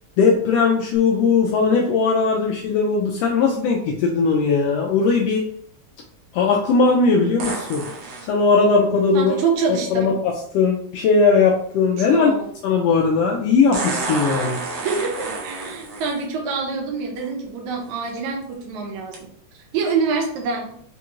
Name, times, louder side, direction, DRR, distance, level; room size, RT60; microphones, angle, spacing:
voice 1, 0.2-5.4 6.3-7.8 8.2-9.4 9.7-12.3 12.6-14.6, left 4 dB, 85° left, 0 dB, 1.4 m, -18 dB
sound 1, 7.4-8.3 10.3-10.4 13.7-16.2 17.2-17.3 17.9-18.2 19.1-19.2, right 3 dB, 70° right, 1.9 m, -29 dB
voice 2, 9.1-10.1 12.0-12.5 14.8-19.2 19.7-20.7, right 5 dB, 85° right, 0 dB, 2.2 m, -25 dB
5.0 x 2.3 x 3.0 m, 0.64 s
omnidirectional pair, 3.3 m